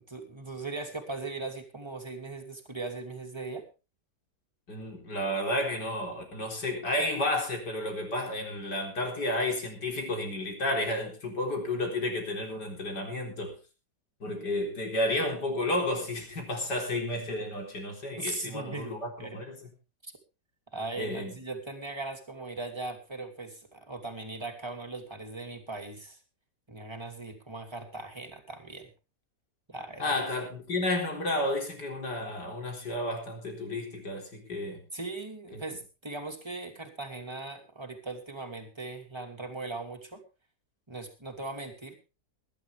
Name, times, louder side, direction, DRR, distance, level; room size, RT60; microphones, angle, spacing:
voice 1, 0.0-3.6 18.1-18.9 19.2-19.4 20.0-20.1 20.7-26.2 26.7-28.9 29.7-30.1 34.9-40.2 40.9-42.0, right 3 dB, 15° right, 2.9 m, -39 dB
voice 2, 4.7-13.5 14.2-19.7 21.0-21.3 30.0-34.8 35.5-35.6, left 1 dB, 75° left, 4.6 m, -32 dB
21.0 x 11.5 x 3.5 m
omnidirectional pair, 1.8 m